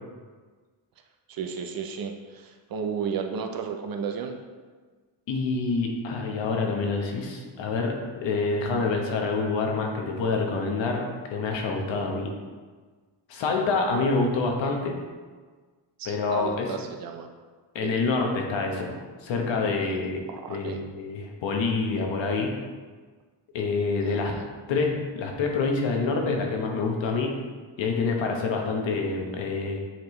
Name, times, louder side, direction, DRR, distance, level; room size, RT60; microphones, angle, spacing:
voice 1, 1.3-4.4 16.0-17.3 17.8-18.0 20.0-20.8 24.0-24.5, right 6 dB, 50° right, 5 dB, 0.7 m, -34 dB
voice 2, 5.3-11.0 11.3-12.3 13.3-14.9 16.0-16.7 17.7-20.2 20.5-22.5 23.5-24.3 24.7-27.3 27.8-29.8, left 4 dB, 75° left, 1 dB, 1.2 m, -27 dB
7.9 x 4.5 x 3.2 m, 1.4 s
cardioid pair, 125°, 45 cm